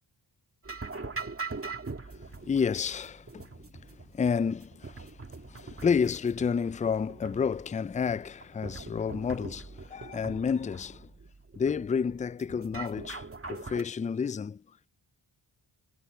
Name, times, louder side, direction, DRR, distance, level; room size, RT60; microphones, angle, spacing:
sound 1, 0.6-13.8, right 4 dB, 30° right, 2.2 m, -42 dB
voice 1, 2.1-3.5 4.1-5.1 5.5-11.1 11.6-14.6, left 6 dB, 20° left, 0.3 m, -30 dB
wide cardioid pair, 85°, 45 cm